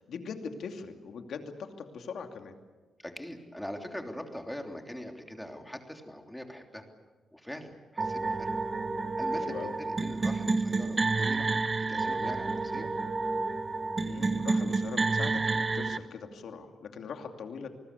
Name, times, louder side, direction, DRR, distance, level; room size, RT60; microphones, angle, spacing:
voice 1, 0.0-2.5 9.4-9.7 14.0-17.7, left 5 dB, 75° left, 5 dB, 2.6 m, -41 dB
voice 2, 3.0-6.8 7.3-8.5 9.1-11.5 11.8-12.9, left 1 dB, 5° left, 4 dB, 3.2 m, -42 dB
sound 1, 8.0-16.0, right 3 dB, 30° right, 1.2 m, -30 dB
28.0 x 20.0 x 8.3 m, 1.3 s
cardioid pair, 95°, 0 cm